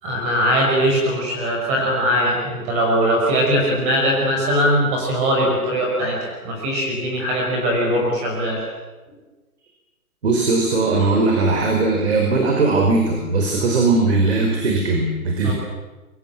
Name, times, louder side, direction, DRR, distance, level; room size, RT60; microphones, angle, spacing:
voice 1, 0.0-8.6 15.4-15.5, equal, 15° right, -1 dB, 5.7 m, -20 dB
voice 2, 10.2-15.5, right 3 dB, 45° right, 2 dB, 5.0 m, -19 dB
27.0 x 24.0 x 7.6 m, 1.2 s
hypercardioid pair, 165°, 45 cm